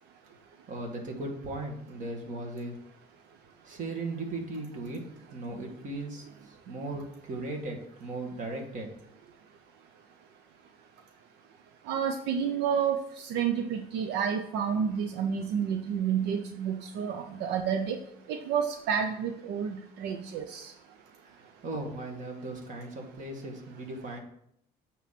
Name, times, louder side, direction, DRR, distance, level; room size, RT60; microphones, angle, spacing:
voice 1, 0.7-2.8 3.6-8.9 9.2-9.3 21.2-24.2, right 2 dB, 50° right, 1 dB, 2.0 m, -37 dB
voice 2, 11.9-13.0 13.2-18.0 18.3-20.7, right 7 dB, 85° right, 5 dB, 0.6 m, -30 dB
9.1 x 3.1 x 5.8 m, 0.72 s
cardioid pair, 110°, 17 cm